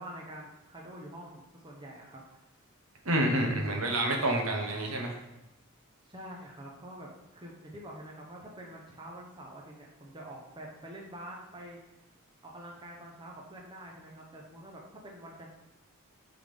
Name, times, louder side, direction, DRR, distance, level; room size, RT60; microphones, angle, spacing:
voice 1, 0.0-2.4 6.0-11.8 12.4-15.5, right 1 dB, 20° right, -2 dB, 0.8 m, -46 dB
voice 2, 3.0-5.2, right 1 dB, 70° right, 1 dB, 1.2 m, -28 dB
8.6 x 3.9 x 3.5 m, 0.94 s
head